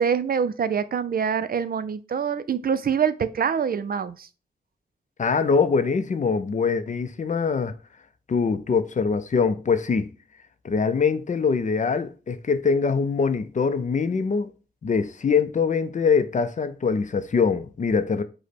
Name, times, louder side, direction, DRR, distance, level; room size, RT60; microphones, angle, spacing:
voice 1, 0.0-4.3, right 7 dB, 65° right, 0.4 m, -25 dB
voice 2, 5.2-7.8 8.3-10.1 10.6-14.5 14.8-18.2, left 5 dB, 50° left, 0.4 m, -23 dB
5.0 x 2.1 x 4.2 m
wide cardioid pair, 85°, 17 cm